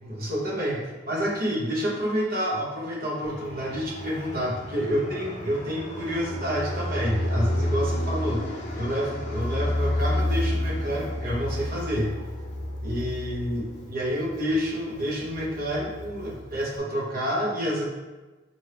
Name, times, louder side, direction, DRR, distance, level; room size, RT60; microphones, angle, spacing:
voice 1, 0.0-12.1 12.8-17.8, equal, 50° right, -3 dB, 0.9 m, -28 dB
Fixed-wing aircraft airplane, 3.2-16.8, left 1 dB, 40° left, 0.7 m, -31 dB
4.3 x 2.6 x 3.3 m, 1.2 s
head